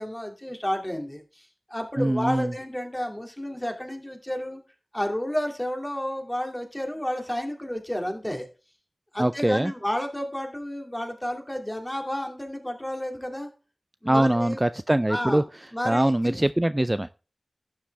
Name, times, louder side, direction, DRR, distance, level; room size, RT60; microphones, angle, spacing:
voice 1, 0.0-4.6 4.9-8.5 9.1-13.5 14.0-14.6 15.1-15.4 15.7-16.4, equal, 15° left, 4 dB, 2.6 m, -31 dB
voice 2, 2.0-2.5 9.2-9.7 14.1-15.4 15.8-17.1, right 1 dB, 20° right, 13 dB, 0.4 m, -23 dB
11.5 x 7.7 x 3.5 m, 0.34 s
cardioid pair, 40°, 0 cm